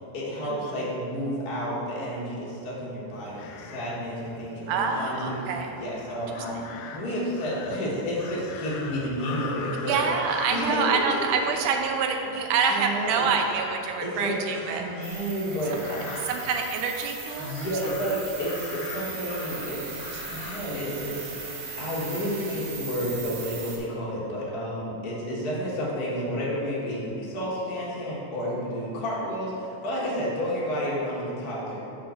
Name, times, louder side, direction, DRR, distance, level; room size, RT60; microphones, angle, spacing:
voice 1, 0.1-5.4 5.7-6.7 6.9-10.0 10.5-11.2 12.7-13.3 14.0-14.4 14.7-16.3 17.4-31.8, equal, 50° left, -7 dB, 1.2 m, -31 dB
sound 1, 3.1-20.6, left 5 dB, 80° left, 2.0 m, -42 dB
voice 2, 4.7-5.8 9.9-14.9 16.3-17.9, right 5 dB, 80° right, 4 dB, 2.0 m, -26 dB
sound 2, 15.0-23.8, right 4 dB, 65° right, 2.0 m, -38 dB
5.6 x 5.4 x 6.3 m, 2.8 s
omnidirectional pair, 3.8 m